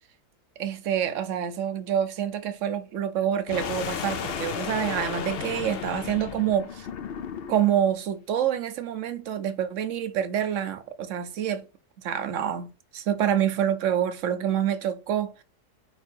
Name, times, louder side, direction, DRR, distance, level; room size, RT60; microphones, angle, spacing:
voice 1, 0.6-6.9 7.5-11.6 12.0-15.4, right 9 dB, 60° right, 0.9 m, -27 dB
sound 1, 3.5-7.8, left 8 dB, 65° left, 0.5 m, -34 dB
4.8 x 4.5 x 4.4 m
omnidirectional pair, 1.7 m